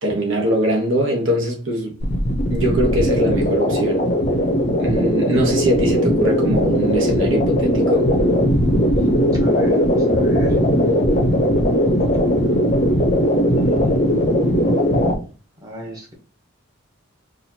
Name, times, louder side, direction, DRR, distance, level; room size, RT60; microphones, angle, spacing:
voice 1, 0.0-2.0 2.5-4.1 4.8-8.1, right 1 dB, 60° right, 1.1 m, -21 dB
sound 1, 2.0-15.1, equal, 35° left, 0.6 m, -18 dB
voice 2, 9.3-10.6 13.6-14.0 15.6-16.1, right 1 dB, 15° right, 1.0 m, -33 dB
4.1 x 2.4 x 2.8 m
head